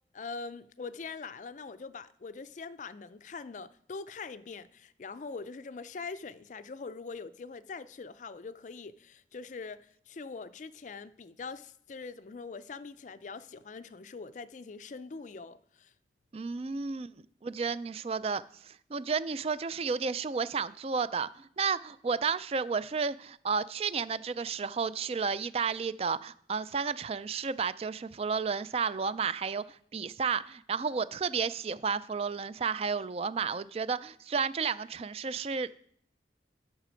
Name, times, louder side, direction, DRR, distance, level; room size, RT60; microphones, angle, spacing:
voice 1, 0.1-15.9, left 4 dB, 40° left, 0.4 m, -43 dB
voice 2, 16.3-17.1 17.4-35.7, right 5 dB, 35° right, 0.3 m, -32 dB
11.0 x 6.6 x 5.1 m
head